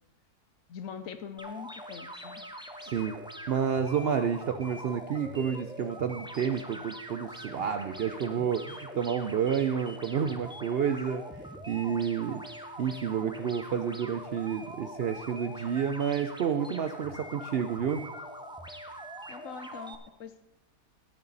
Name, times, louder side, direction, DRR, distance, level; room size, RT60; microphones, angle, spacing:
voice 1, 0.7-2.4 18.9-19.0 19.3-20.5, left 7 dB, 60° left, 10 dB, 1.0 m, -43 dB
sound 1, 1.4-19.9, equal, 5° right, 0.4 m, -43 dB
voice 2, 2.8-3.2 3.5-12.4 12.8-18.1, right 7 dB, 75° right, 9 dB, 0.5 m, -30 dB
19.0 x 7.0 x 4.0 m, 0.96 s
omnidirectional pair, 1.7 m